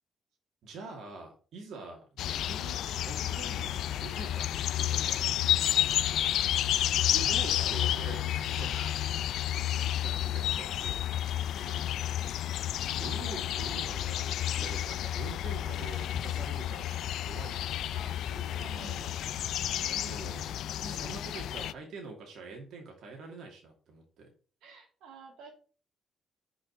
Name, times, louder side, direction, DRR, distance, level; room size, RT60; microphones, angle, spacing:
voice 1, 0.6-4.5 4.8-6.6 7.0-9.1 9.6-11.0 12.9-17.7 18.1-19.2 20.0-20.5 20.9-24.3, right 3 dB, 70° right, 1 dB, 2.5 m, -45 dB
sound 1, 2.2-21.7, left 12 dB, 80° left, 0.4 m, -31 dB
voice 2, 11.3-11.9 12.9-13.1 17.9-19.0 19.7-20.3 20.8-21.2 24.6-25.5, right 4 dB, 90° right, 1 dB, 2.8 m, -51 dB
5.8 x 5.7 x 6.5 m, 0.38 s
cardioid pair, 90°, 0 cm